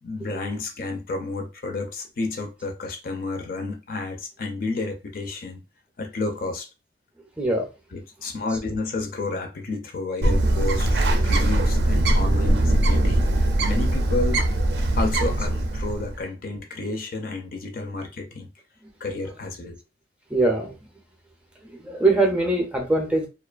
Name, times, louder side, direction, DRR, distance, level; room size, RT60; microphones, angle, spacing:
voice 1, 0.0-5.6 6.0-6.7 7.9-14.5 15.0-18.5 19.0-19.8, left 2 dB, 50° left, 0.4 m, -31 dB
voice 2, 7.4-7.7 8.5-8.6 10.1-10.2 12.2-12.4 19.2-19.3 20.3-20.8 21.6-23.3, right 2 dB, 5° right, 0.4 m, -23 dB
Bird, 10.2-16.1, right 1 dB, 65° right, 0.4 m, -21 dB
2.4 x 2.3 x 2.3 m
head